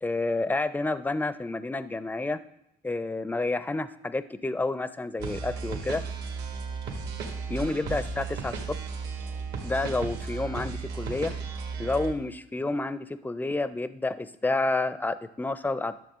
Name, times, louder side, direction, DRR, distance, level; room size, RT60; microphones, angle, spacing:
voice 1, 0.0-2.4 2.8-6.0 7.5-8.8 9.6-11.4 11.8-16.0, left 2 dB, 10° left, 13 dB, 0.4 m, -29 dB
sound 1, 5.2-12.1, right 5 dB, 75° right, 1.7 m, -35 dB
11.5 x 6.8 x 3.6 m, 0.82 s
cardioid pair, 110°, 17 cm